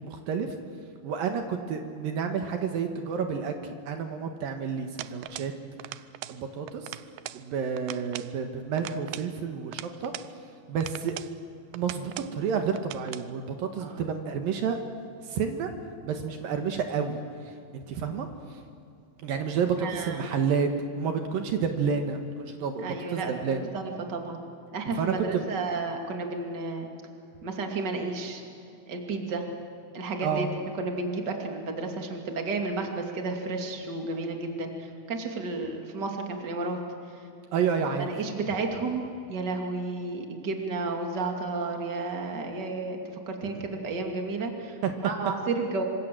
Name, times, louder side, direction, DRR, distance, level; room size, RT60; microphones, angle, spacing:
voice 1, 0.0-0.5 1.0-3.5 3.9-5.5 6.3-6.9 7.3-10.1 10.7-11.1 11.7-14.8 15.2-15.7 16.0-17.2 17.7-18.3 19.2-20.7 21.0-23.7 25.0-25.4 30.2-30.5 37.5-38.1 44.8-44.9, right 6 dB, 70° right, 5 dB, 3.1 m, -30 dB
sound 1, 5.0-5.6 5.8-6.4 6.7-7.4 7.8-8.3 8.8-10.3 10.8-11.4 11.7-12.4 12.8-13.3, right 14 dB, 90° right, 2.7 m, -40 dB
voice 2, 19.8-20.2 22.8-24.4 24.7-26.9 27.4-28.4 28.9-29.5 29.9-30.5 30.8-36.8 37.1-37.3 38.0-45.8, right 3 dB, 30° right, 3 dB, 2.9 m, -32 dB
27.0 x 26.0 x 7.7 m, 2.6 s
omnidirectional pair, 4.3 m